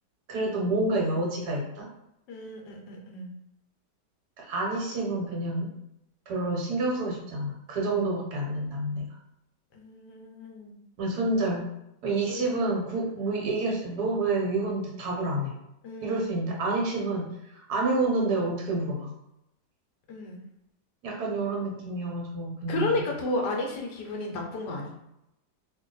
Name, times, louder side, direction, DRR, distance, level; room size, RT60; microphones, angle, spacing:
voice 1, 0.3-1.9 4.4-5.7 6.3-9.1 11.0-11.7 12.0-15.5 16.0-19.1 21.0-23.0, right 2 dB, 70° right, -2 dB, 1.4 m, -28 dB
voice 2, 2.3-3.3 9.7-10.8 12.3-12.5 13.2-13.3 15.8-16.3 20.1-20.4 22.7-24.9, left 2 dB, 75° left, 1 dB, 1.3 m, -33 dB
2.9 x 2.6 x 3.8 m, 0.84 s
omnidirectional pair, 1.9 m